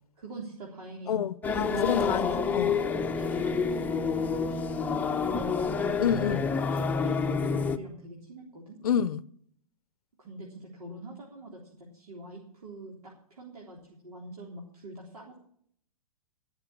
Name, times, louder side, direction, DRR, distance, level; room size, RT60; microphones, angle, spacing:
voice 1, 0.2-2.1 2.4-5.9 6.2-8.8 10.2-15.4, right 1 dB, 90° right, 3.7 m, -44 dB
voice 2, 1.1-2.7 6.0-6.4 8.8-9.2, left 8 dB, 85° left, 0.6 m, -28 dB
sound 1, 1.4-7.8, left 5 dB, 10° left, 0.7 m, -28 dB
19.0 x 6.7 x 7.3 m
hypercardioid pair, 135°, 19 cm